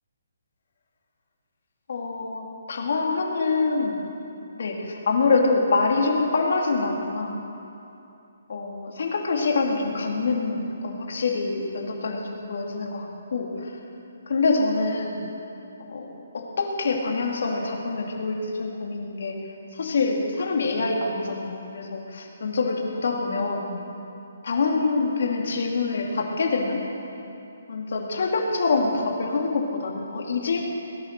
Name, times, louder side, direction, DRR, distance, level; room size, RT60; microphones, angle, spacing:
voice 1, 1.9-3.9 4.3-7.4 8.5-13.8 14.3-15.2 15.8-19.4 19.7-23.7 24.4-26.8 27.7-30.6, left 3 dB, 60° left, 0 dB, 2.6 m, -25 dB
18.5 x 10.5 x 6.7 m, 2.8 s
hypercardioid pair, 165°, 0 cm